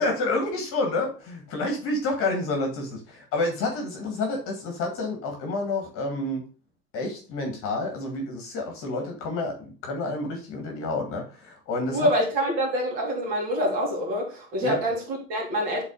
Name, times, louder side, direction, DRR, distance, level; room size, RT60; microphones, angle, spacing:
voice 1, 0.0-6.4 6.9-12.1 14.6-14.8, left 2 dB, 30° left, 2 dB, 1.7 m, -29 dB
voice 2, 11.9-15.8, equal, 35° right, -1 dB, 3.0 m, -26 dB
8.3 x 4.1 x 3.9 m, 0.38 s
figure-of-eight pair, 95°, 47 cm